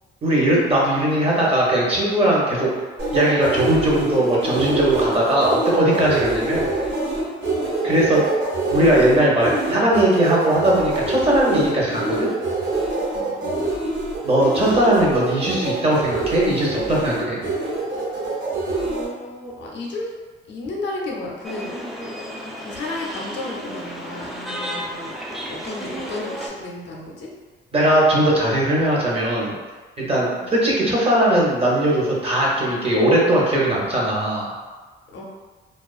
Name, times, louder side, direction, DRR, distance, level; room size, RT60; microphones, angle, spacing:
voice 1, 0.2-2.7 3.1-6.7 7.8-8.2 8.7-12.3 14.2-17.4 27.7-29.5 30.0-34.5, right 1 dB, 30° right, -4 dB, 0.8 m, -19 dB
sound 1, 3.0-19.0, right 2 dB, 55° right, 1.0 m, -25 dB
voice 2, 13.1-13.6 18.8-20.1 20.5-21.7 22.6-25.1 25.5-27.3 30.3-30.5 35.1-35.2, left 2 dB, 65° left, -2 dB, 0.6 m, -33 dB
sound 2, 21.4-26.5, equal, ahead, 0.3 m, -32 dB
2.4 x 2.3 x 2.3 m, 1.3 s
cardioid pair, 90°, 20 cm